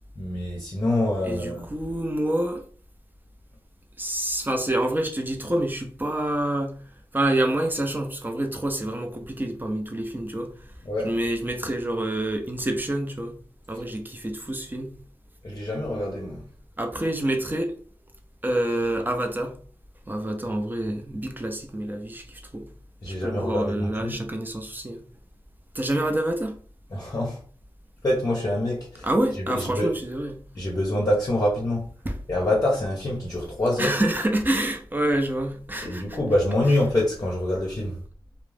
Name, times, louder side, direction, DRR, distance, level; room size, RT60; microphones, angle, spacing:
voice 1, 0.2-1.6 10.8-11.1 15.4-16.4 23.0-24.2 26.9-27.4 28.0-29.1 29.4-29.9 30.5-31.9 32.3-34.0 35.8-38.0, left 1 dB, 40° left, 0.6 m, -25 dB
voice 2, 1.2-2.6 4.0-6.7 7.1-10.5 11.0-13.3 13.7-14.9 16.8-17.7 18.4-19.5 20.1-22.7 23.1-25.0 25.7-26.6 29.0-30.4 32.0-32.2 33.8-36.2, right 1 dB, 20° right, 0.5 m, -27 dB
2.3 x 2.0 x 3.2 m
wide cardioid pair, 75°, 9 cm